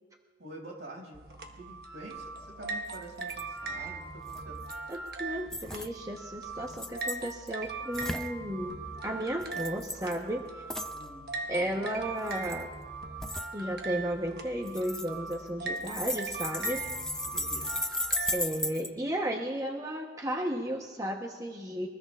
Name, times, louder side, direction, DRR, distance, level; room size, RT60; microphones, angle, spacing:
voice 1, 0.4-1.3 1.6-4.6 10.9-11.8 16.8-17.8, right 1 dB, 80° right, -2 dB, 6.2 m, -47 dB
sound 1, 1.1-18.4, right 3 dB, 60° right, 1.3 m, -40 dB
sound 2, 2.9-3.0 3.2-3.4 4.3-4.9 5.5-5.9 6.6-7.5 7.9-8.3 9.4-10.2 10.7-11.0 12.2-12.6 13.2-13.5 14.7-15.5 15.8-18.9, left 1 dB, 5° left, 0.4 m, -35 dB
voice 2, 4.9-10.4 11.5-12.7 13.5-16.8 18.3-21.9, right 1 dB, 20° right, 2 dB, 0.9 m, -34 dB
23.5 x 20.5 x 2.4 m, 1.5 s
head